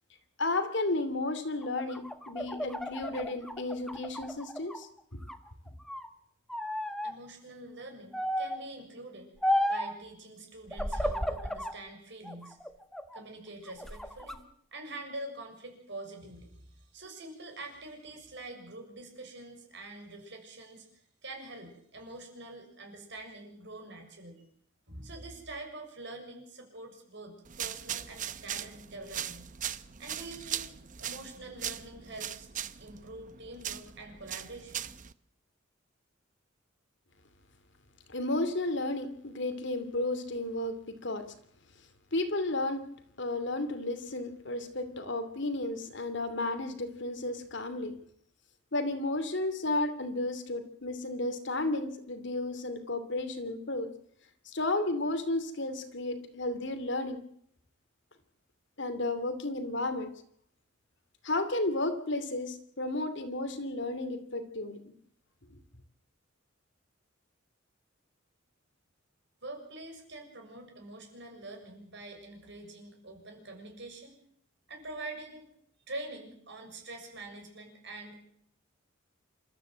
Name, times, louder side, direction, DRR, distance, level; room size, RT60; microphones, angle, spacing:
voice 1, 0.4-4.9 38.1-41.2 42.1-42.9 43.2-47.9 48.7-53.9 54.5-57.2 58.8-60.1 61.2-64.8, left 2 dB, 60° left, 10 dB, 2.7 m, -33 dB
sound 1, 1.6-4.8 5.2-6.1 6.5-7.1 8.1-8.7 9.4-10.0 10.7-11.8 12.2-13.2 13.7-14.4, left 1 dB, ahead, 1.3 m, -33 dB
voice 2, 7.0-9.3 9.7-12.6 13.1-14.4 14.7-20.9 21.2-24.4 24.9-29.5 30.0-30.7 31.0-32.5 32.8-34.9 69.4-74.1 74.7-75.5 75.9-78.2, right 2 dB, 60° right, 3 dB, 6.7 m, -45 dB
sound 2, 27.4-35.1, right 10 dB, 40° right, 0.8 m, -39 dB
27.5 x 13.5 x 8.0 m, 0.67 s
head